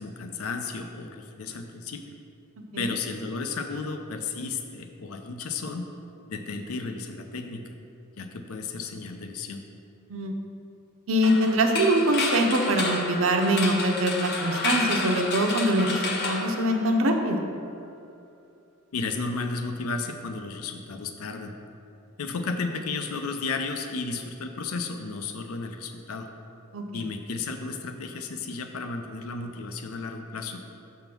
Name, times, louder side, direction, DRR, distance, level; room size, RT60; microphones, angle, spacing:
voice 1, 0.0-2.0 2.8-5.9 6.3-7.8 8.2-9.6 18.9-21.6 22.2-26.3 26.9-30.6, left 4 dB, 85° left, 6 dB, 0.5 m, -33 dB
voice 2, 11.1-17.4 26.7-27.1, right 1 dB, 65° right, 4 dB, 0.7 m, -24 dB
sound 1, 11.2-17.2, left 3 dB, 50° left, 0.7 m, -30 dB
6.7 x 3.6 x 6.0 m, 2.6 s
head